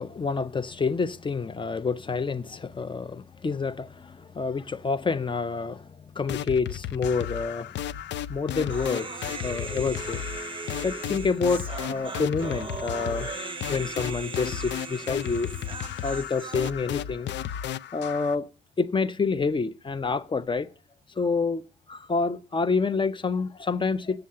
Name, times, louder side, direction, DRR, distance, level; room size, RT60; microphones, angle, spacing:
voice 1, 0.0-7.7 8.3-10.3 10.8-13.3 13.7-15.5 16.0-17.3 17.9-18.5 18.8-20.7 21.2-24.3, left 4 dB, 25° left, 0.7 m, -28 dB
sound 1, 6.3-18.4, left 10 dB, 65° left, 0.5 m, -34 dB
Human voice, 8.7-16.7, right 5 dB, 25° right, 0.7 m, -38 dB
7.7 x 7.1 x 7.6 m
cardioid pair, 90°, 20 cm